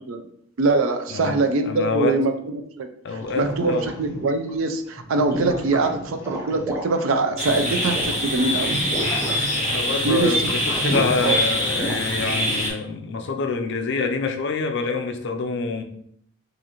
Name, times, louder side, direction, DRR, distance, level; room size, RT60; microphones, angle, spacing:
voice 1, 0.6-2.9 3.4-3.7 4.0-8.8 10.0-10.5 11.2-11.4, right 3 dB, 65° right, 7 dB, 0.4 m, -23 dB
voice 2, 1.6-2.2 3.0-3.9 9.7-15.8, left 4 dB, 55° left, 5 dB, 0.5 m, -26 dB
sound 1, 3.2-4.6 5.0-11.9, right 1 dB, 10° right, 0.7 m, -31 dB
sound 2, 7.4-12.7, left 1 dB, 35° right, 1.2 m, -24 dB
4.7 x 2.6 x 2.9 m, 0.69 s
head